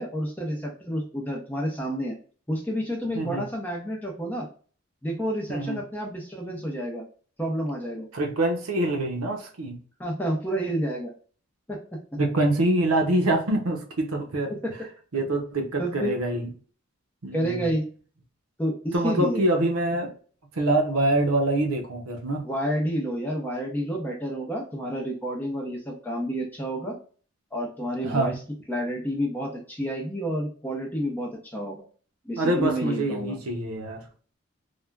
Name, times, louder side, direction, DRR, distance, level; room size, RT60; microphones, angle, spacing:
voice 1, 0.0-2.2 2.5-4.5 5.0-7.0 7.4-8.1 10.0-11.1 11.7-11.8 14.5-14.7 15.8-16.1 17.3-17.9 18.6-19.4 22.4-27.0 27.5-28.3 28.7-31.8 32.2-33.4, equal, 10° left, -1 dB, 0.6 m, -29 dB
voice 2, 3.1-3.4 5.5-5.8 8.1-9.8 12.2-14.6 15.1-16.5 17.2-17.7 18.9-20.1 20.5-22.4 28.0-28.4 32.4-34.1, right 1 dB, 80° right, 3 dB, 0.7 m, -25 dB
3.4 x 2.1 x 2.3 m, 0.41 s
head